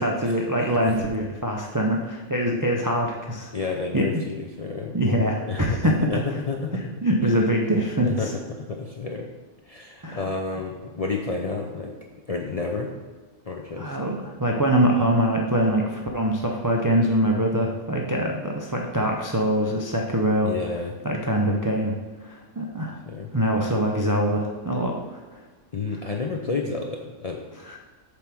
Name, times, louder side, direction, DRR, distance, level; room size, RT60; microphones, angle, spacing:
voice 1, 0.0-3.5 3.9-4.1 4.9-6.0 6.7-8.3 10.0-10.2 13.8-20.5 21.0-22.0 22.2-23.0 23.3-25.4 27.7-27.8, right 1 dB, 25° right, 0 dB, 0.4 m, -24 dB
voice 2, 0.6-1.1 2.0-2.1 3.5-5.0 5.5-6.9 8.0-9.3 9.6-11.9 12.3-12.9 13.4-13.9 20.4-21.2 23.1-23.3 25.7-27.4, left 4 dB, 50° left, 1 dB, 0.4 m, -30 dB
8.1 x 3.5 x 5.9 m, 1.4 s
omnidirectional pair, 1.4 m